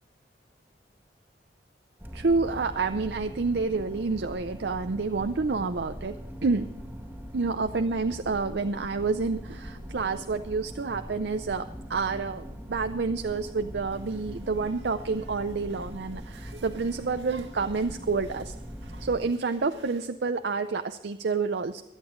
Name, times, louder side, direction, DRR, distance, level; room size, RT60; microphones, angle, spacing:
sound 1, 2.0-19.3, equal, 10° right, 1.8 m, -41 dB
voice 1, 2.1-6.2 6.4-6.7 7.3-18.5 19.0-21.8, right 4 dB, 70° right, 8 dB, 0.6 m, -29 dB
sound 2, 13.9-20.1, right 2 dB, 90° right, 2.0 m, -53 dB
24.0 x 9.0 x 3.8 m, 0.95 s
head